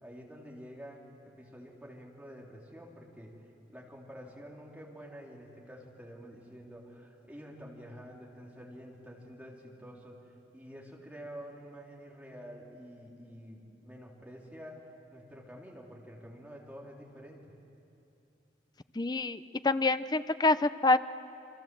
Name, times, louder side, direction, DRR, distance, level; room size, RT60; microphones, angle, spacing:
voice 1, 0.0-10.2 10.5-14.8 15.1-17.4, equal, 10° right, -3 dB, 3.6 m, -48 dB
voice 2, 19.0-21.0, left 2 dB, 25° left, 13 dB, 0.5 m, -26 dB
29.0 x 24.0 x 7.8 m, 2.8 s
head